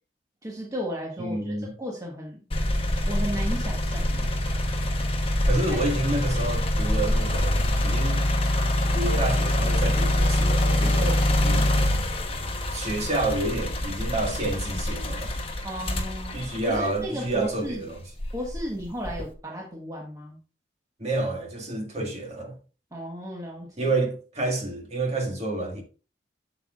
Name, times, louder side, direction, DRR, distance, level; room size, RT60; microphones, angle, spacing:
voice 1, 0.4-2.4 3.1-4.3 5.7-5.8 11.0-11.2 15.6-16.4 16.7-17.9 18.3-20.4 22.9-23.9, equal, 20° right, 1.2 m, -34 dB
voice 2, 1.2-1.7 5.5-8.3 8.9-11.7 12.7-15.3 16.3-18.0 21.0-22.6 23.8-25.8, right 2 dB, 40° right, 1.7 m, -29 dB
sound 1, 2.5-17.5 18.1-19.3, left 1 dB, 30° left, 1.0 m, -25 dB
7.6 x 7.0 x 2.4 m
head